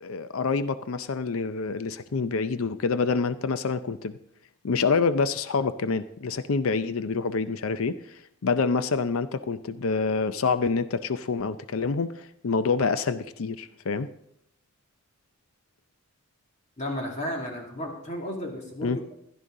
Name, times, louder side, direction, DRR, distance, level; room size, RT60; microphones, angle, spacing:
voice 1, 0.0-4.2 4.6-14.1 18.8-19.0, left 4 dB, 80° left, 13 dB, 0.6 m, -27 dB
voice 2, 16.8-19.2, equal, 35° left, 0 dB, 2.3 m, -33 dB
16.0 x 11.0 x 3.8 m, 0.75 s
head